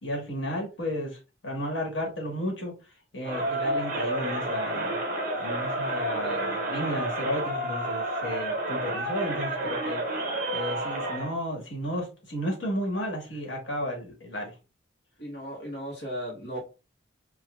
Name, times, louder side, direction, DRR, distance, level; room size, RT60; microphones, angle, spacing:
voice 1, 0.0-2.7 3.1-5.0 5.4-10.0 10.5-14.5, equal, 85° left, 1.3 m, -33 dB
Crowd, 3.2-11.3, right 1 dB, 45° right, 0.6 m, -30 dB
voice 2, 15.2-16.6, equal, 55° left, 0.9 m, -36 dB
5.0 x 2.2 x 2.2 m
head